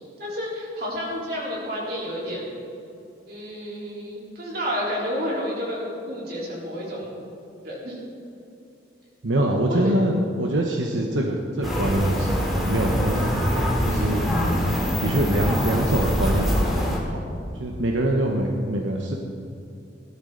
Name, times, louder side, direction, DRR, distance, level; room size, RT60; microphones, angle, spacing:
voice 1, 0.2-2.4 3.3-7.1 7.6-8.0 9.7-9.9, equal, 55° right, -4 dB, 3.9 m, -30 dB
voice 2, 9.2-12.3 12.6-14.2 15.0-17.2 17.6-19.2, right 1 dB, 90° right, 1 dB, 1.1 m, -24 dB
sound 1, 11.6-17.0, equal, ahead, 2.3 m, -24 dB
17.5 x 12.0 x 3.9 m, 2.7 s
head